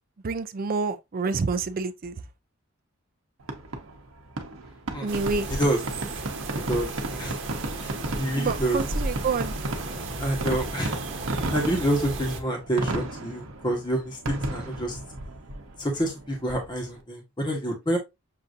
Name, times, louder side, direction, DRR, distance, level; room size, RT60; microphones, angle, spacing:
voice 1, 0.2-2.2 5.0-5.5 8.4-9.5, right 4 dB, 45° right, 0.4 m, -28 dB
Fireworks, 3.4-17.0, right 2 dB, 85° right, 0.9 m, -34 dB
sound 1, 5.1-12.4, right 2 dB, 60° right, 1.0 m, -35 dB
voice 2, 6.7-7.4 7.8-8.8 10.2-11.0 11.5-15.0 15.8-18.0, right 1 dB, 20° left, 1.1 m, -28 dB
6.5 x 2.6 x 2.5 m
head